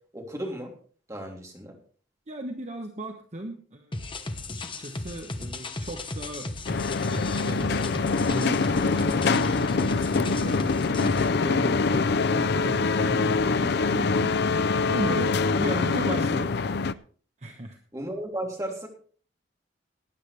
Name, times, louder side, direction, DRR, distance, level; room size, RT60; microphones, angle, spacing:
voice 1, 0.1-0.7 1.1-1.8 17.9-18.9, right 1 dB, 15° right, 0 dB, 3.2 m, -34 dB
voice 2, 2.3-4.2 4.6-6.5 7.1-7.9 8.3-16.5 17.4-17.8, right 1 dB, 40° right, 4 dB, 1.1 m, -36 dB
sound 1, 3.9-11.3, left 2 dB, 25° left, 1.1 m, -35 dB
sound 2, 6.7-16.9, left 4 dB, 60° left, 0.5 m, -24 dB
19.0 x 9.8 x 3.4 m, 0.43 s
head